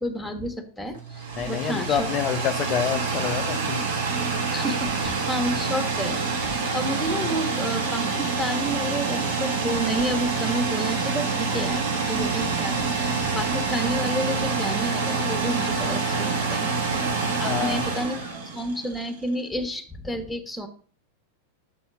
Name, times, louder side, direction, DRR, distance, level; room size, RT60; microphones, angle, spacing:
voice 1, 0.0-2.1 4.5-16.9 17.4-18.2 18.5-20.7, equal, 5° left, 7 dB, 1.1 m, -30 dB
sound 1, 0.9-19.1, right 4 dB, 60° right, 1.5 m, -26 dB
voice 2, 1.4-3.8 17.4-17.9, left 9 dB, 35° left, 7 dB, 0.4 m, -27 dB
6.6 x 4.2 x 6.0 m, 0.44 s
figure-of-eight pair, 90°, 0 cm